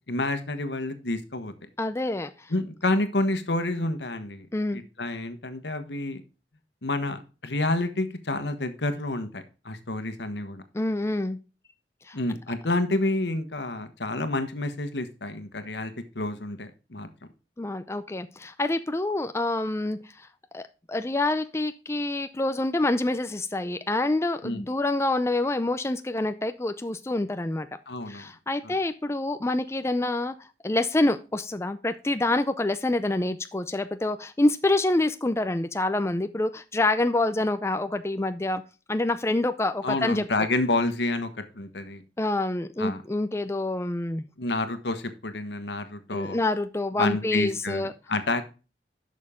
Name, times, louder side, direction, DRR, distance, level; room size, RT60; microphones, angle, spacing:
voice 1, 0.1-1.5 2.5-4.5 4.7-6.2 6.8-10.6 12.1-17.1 24.4-24.6 27.9-28.2 28.6-28.8 39.8-42.0 42.8-43.0 44.4-46.4 47.0-48.4, left 2 dB, 75° left, 10 dB, 1.3 m, -29 dB
voice 2, 1.8-2.5 4.5-4.8 10.7-11.4 12.1-12.2 17.6-20.3 20.5-27.7 28.1-30.3 30.6-38.6 38.9-40.2 42.2-44.2 46.1-47.9, left 2 dB, 15° left, 10 dB, 0.5 m, -27 dB
11.0 x 6.5 x 3.7 m, 0.32 s
head